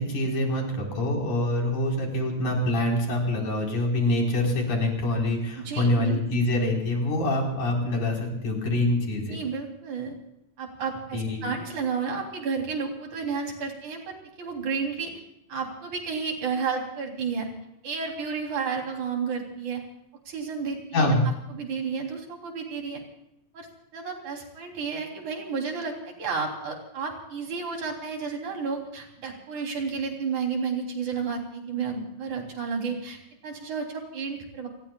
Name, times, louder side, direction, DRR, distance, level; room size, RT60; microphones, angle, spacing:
voice 1, 0.0-9.4 11.1-11.5 20.9-21.2, left 1 dB, 85° left, 0 dB, 5.9 m, -25 dB
voice 2, 5.6-6.2 9.3-10.1 10.6-15.1 15.5-17.5 17.8-19.8 20.3-21.1 21.5-23.0 23.5-23.7 23.9-33.2 33.4-34.7, right 5 dB, 85° right, 1 dB, 4.8 m, -31 dB
28.5 x 20.5 x 2.4 m, 0.80 s
omnidirectional pair, 3.3 m